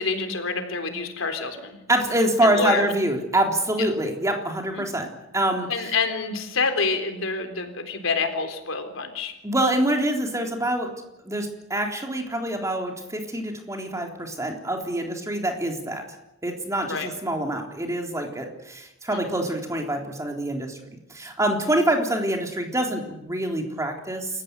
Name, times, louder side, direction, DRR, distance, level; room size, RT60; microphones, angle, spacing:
voice 1, 0.0-1.8 2.4-2.9 3.8-3.9 4.7-4.9 5.7-9.4 16.9-17.1 19.1-19.2, left 4 dB, 90° left, 7 dB, 3.9 m, -27 dB
voice 2, 1.9-5.1 5.3-5.7 9.4-10.9 11.2-16.0 16.4-20.8 21.1-24.3, right 1 dB, 15° right, 2 dB, 3.7 m, -25 dB
28.5 x 15.0 x 9.8 m, 0.88 s
head